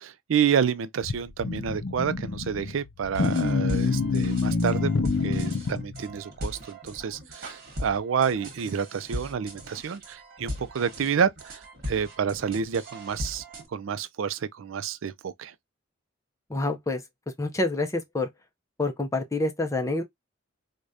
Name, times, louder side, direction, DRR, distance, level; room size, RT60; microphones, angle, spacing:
voice 1, 0.0-4.9 5.2-11.6 11.9-13.4 13.7-15.5, right 7 dB, 80° right, 0.4 m, -29 dB
sound 1, 1.0-6.2, left 4 dB, 75° left, 0.6 m, -27 dB
sound 2, 3.1-13.6, equal, 50° right, 1.2 m, -39 dB
voice 2, 16.5-17.0 17.4-18.3 18.8-20.0, left 2 dB, 15° left, 0.5 m, -27 dB
4.8 x 2.2 x 2.6 m
head